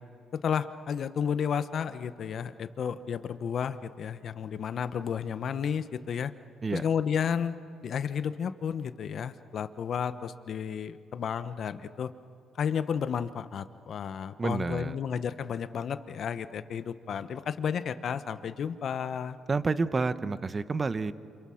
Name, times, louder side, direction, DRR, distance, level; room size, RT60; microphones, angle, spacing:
voice 1, 0.3-6.3 6.7-7.6 7.8-12.1 12.6-19.4, left 7 dB, 60° left, 12 dB, 1.0 m, -32 dB
voice 2, 14.4-15.0 19.5-21.1, right 4 dB, 30° right, 14 dB, 1.0 m, -29 dB
28.0 x 26.5 x 6.4 m, 2.4 s
cardioid pair, 90°, 0 cm